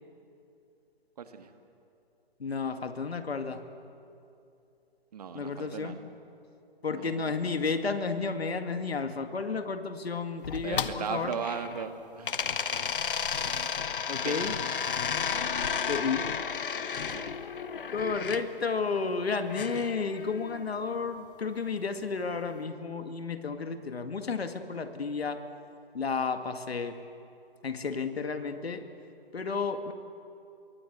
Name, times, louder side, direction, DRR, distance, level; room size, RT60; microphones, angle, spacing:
voice 1, 1.2-1.5 5.1-6.0 6.9-7.5 10.6-12.4 14.2-14.5 17.1-17.3, right 6 dB, 40° right, 7 dB, 1.7 m, -37 dB
voice 2, 2.4-3.6 5.3-6.0 6.8-11.3 14.1-14.5 15.9-16.3 17.9-25.4 25.9-27.0 27.6-28.9 29.3-29.9, left 4 dB, 75° left, 7 dB, 2.2 m, -32 dB
sound 1, 10.4-11.9 12.2-18.4 19.5-20.6, left 6 dB, 55° left, 1.2 m, -32 dB
26.5 x 22.5 x 8.1 m, 2.6 s
hypercardioid pair, 165°, 31 cm